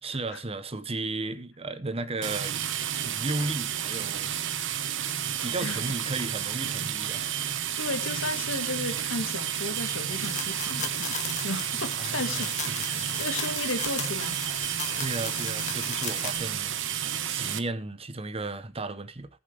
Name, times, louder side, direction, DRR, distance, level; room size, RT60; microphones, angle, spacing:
voice 1, 0.0-2.6 3.0-4.3 5.2-7.4 12.0-13.1 15.0-16.7 17.3-19.3, right 2 dB, 30° right, 1.0 m, -34 dB
sound 1, 2.2-17.6, right 9 dB, 65° right, 1.0 m, -31 dB
voice 2, 7.8-15.0, left 2 dB, 75° left, 1.8 m, -35 dB
sound 2, 10.2-16.4, left 7 dB, 35° left, 1.9 m, -37 dB
20.0 x 7.3 x 3.4 m
head